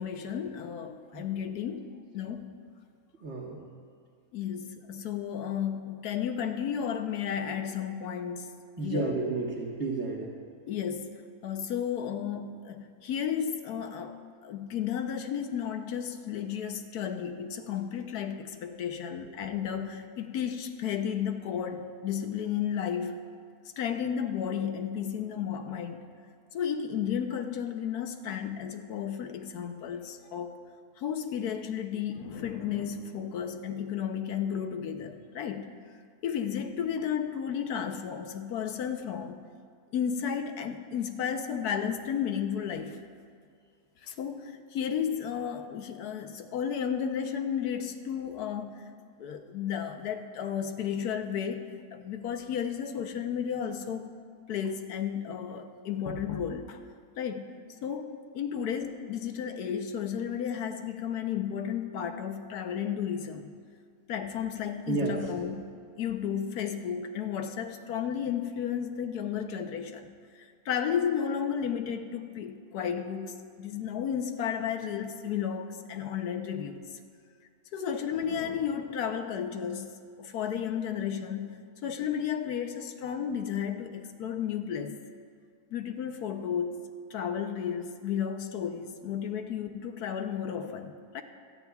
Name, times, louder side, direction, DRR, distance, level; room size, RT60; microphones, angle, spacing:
voice 1, 0.0-2.5 4.3-9.2 10.7-23.2 23.8-26.1 26.5-30.6 31.0-35.7 36.2-39.4 39.9-43.0 44.0-48.9 49.2-51.6 51.9-54.1 54.5-56.8 57.2-57.5 57.8-63.5 64.1-65.7 66.0-76.8 77.7-85.0 85.7-91.2, left 8 dB, 85° left, 6 dB, 1.3 m, -33 dB
voice 2, 3.2-3.6 8.8-10.3 64.9-65.2, right 3 dB, 50° right, -4 dB, 1.4 m, -31 dB
27.0 x 9.4 x 2.3 m, 2.2 s
omnidirectional pair, 1.6 m